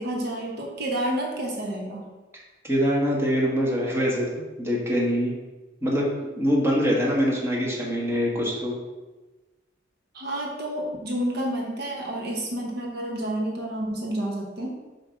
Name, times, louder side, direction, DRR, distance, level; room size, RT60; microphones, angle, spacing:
voice 1, 0.0-2.1 10.1-14.8, right 1 dB, 60° right, -1 dB, 1.0 m, -29 dB
voice 2, 2.6-5.3 5.8-6.1 6.4-8.7, equal, 15° right, -4 dB, 1.4 m, -24 dB
6.9 x 2.9 x 5.6 m, 1.2 s
head